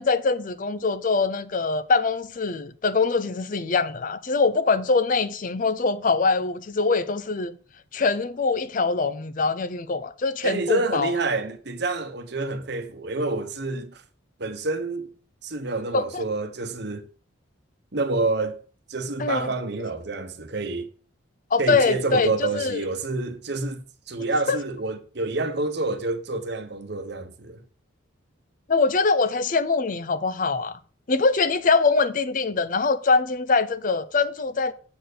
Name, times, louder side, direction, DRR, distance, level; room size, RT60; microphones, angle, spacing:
voice 1, 0.0-7.6 7.9-11.1 15.9-16.2 19.2-19.5 21.5-22.9 24.5-24.6 28.7-30.8 31.1-34.7, left 4 dB, 40° left, 0.5 m, -23 dB
voice 2, 10.4-14.0 14.4-15.1 15.4-17.0 17.9-18.6 18.9-20.9 21.6-27.6, right 3 dB, 55° right, 1.0 m, -28 dB
7.7 x 4.4 x 6.6 m
head